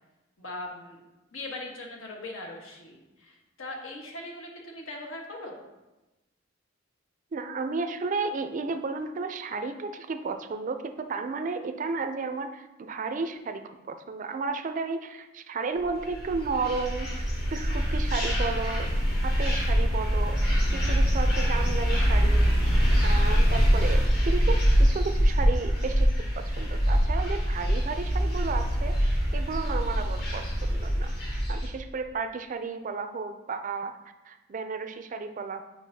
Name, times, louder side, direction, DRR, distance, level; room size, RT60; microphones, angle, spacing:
voice 1, 0.4-1.0 1.3-5.6, left 2 dB, 85° left, -1 dB, 1.2 m, -40 dB
voice 2, 7.3-13.6 13.9-18.9 19.2-22.6 23.0-31.1 31.5-34.0 34.3-35.6, right 4 dB, 40° right, 8 dB, 0.4 m, -33 dB
sound 1, 16.0-31.7, equal, 55° left, 1.6 m, -24 dB
7.4 x 4.8 x 2.7 m, 1.0 s
head